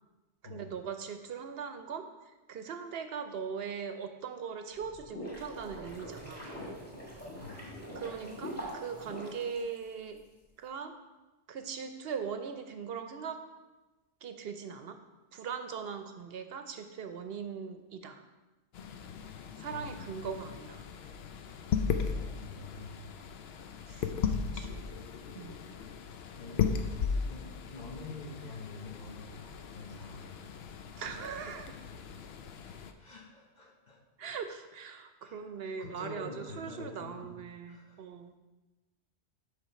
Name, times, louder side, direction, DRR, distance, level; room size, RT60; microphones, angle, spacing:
voice 1, 0.5-2.1 2.5-6.5 8.0-10.2 10.6-10.9 11.5-13.4 14.2-15.0 15.3-18.2 19.6-20.8 23.9-24.9 25.3-25.6 31.0-31.7 34.2-38.4, right 6 dB, 70° right, 7 dB, 0.8 m, -40 dB
sound 1, 4.8-10.2, equal, 15° left, 1.8 m, -43 dB
sound 2, 18.7-32.9, left 6 dB, 70° left, 0.8 m, -37 dB
voice 2, 19.6-20.6 22.1-23.1 26.4-26.7 27.3-30.4 33.0-34.0 35.2-35.4 35.8-37.3 37.7-38.0, left 3 dB, 45° left, -2 dB, 1.3 m, -47 dB
8.0 x 3.6 x 5.6 m, 1.1 s
omnidirectional pair, 1.1 m